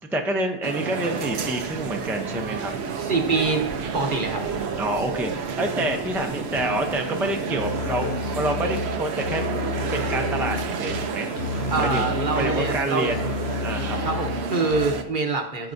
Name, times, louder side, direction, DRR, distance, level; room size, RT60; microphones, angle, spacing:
voice 1, 0.1-2.7 4.8-9.4 9.9-11.3 11.8-13.3 13.6-14.0, right 1 dB, ahead, 3 dB, 0.5 m, -27 dB
sound 1, 0.6-15.0, right 5 dB, 80° right, 1.0 m, -30 dB
sound 2, 1.1-7.9, equal, 15° left, 1.0 m, -44 dB
voice 2, 2.9-3.7 3.9-4.4 11.7-13.1 14.0-15.7, right 4 dB, 55° right, 4 dB, 1.0 m, -25 dB
Musical instrument, 7.6-15.2, left 6 dB, 75° left, 0.8 m, -32 dB
13.5 x 4.6 x 2.6 m, 0.73 s
omnidirectional pair, 1.1 m